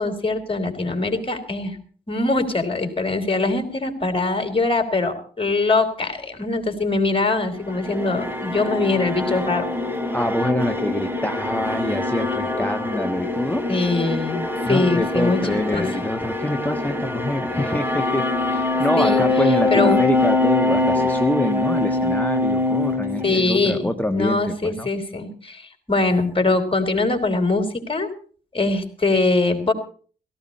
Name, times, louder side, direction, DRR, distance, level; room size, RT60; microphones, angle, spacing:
voice 1, 0.0-1.8 2.1-9.7 13.7-15.4 15.7-15.9 19.0-19.2 19.7-20.0 23.2-28.1 28.5-29.7, left 3 dB, 25° left, 7 dB, 4.7 m, -22 dB
sound 1, 7.5-23.9, left 2 dB, 10° right, 3.4 m, -24 dB
voice 2, 10.1-13.6 14.6-24.9, left 1 dB, 10° left, 6 dB, 1.4 m, -25 dB
17.0 x 16.0 x 4.3 m, 0.42 s
supercardioid pair, 45°, 20 cm